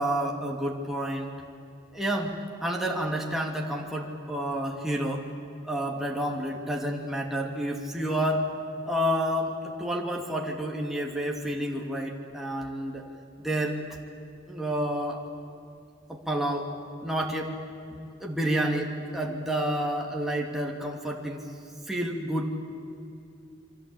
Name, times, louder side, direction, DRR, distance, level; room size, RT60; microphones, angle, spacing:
voice 1, 0.0-1.3 1.9-5.3 5.6-8.4 8.9-13.1 13.4-13.8 14.5-15.2 16.1-16.7 17.0-17.5 17.9-21.4 21.9-22.6, right 1 dB, ahead, -1 dB, 2.6 m, -29 dB
29.0 x 24.0 x 8.6 m, 2.6 s
head